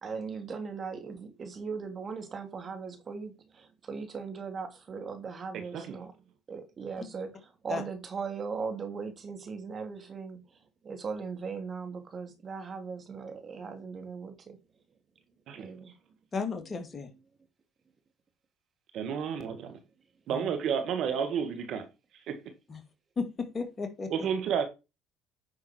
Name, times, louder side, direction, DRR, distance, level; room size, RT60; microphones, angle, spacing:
voice 1, 0.0-6.1 6.5-10.4 10.8-14.6 15.6-16.1 21.1-21.3, right 5 dB, 40° right, 3.0 m, -39 dB
voice 2, 16.3-17.1 20.3-20.5 22.7-22.8 23.2-24.3, left 4 dB, 35° left, 2.6 m, -34 dB
voice 3, 18.9-19.8 20.3-21.9 22.3-22.4 24.1-24.6, right 7 dB, 60° right, 1.9 m, -31 dB
9.7 x 6.3 x 4.6 m
hypercardioid pair, 70°, 0 cm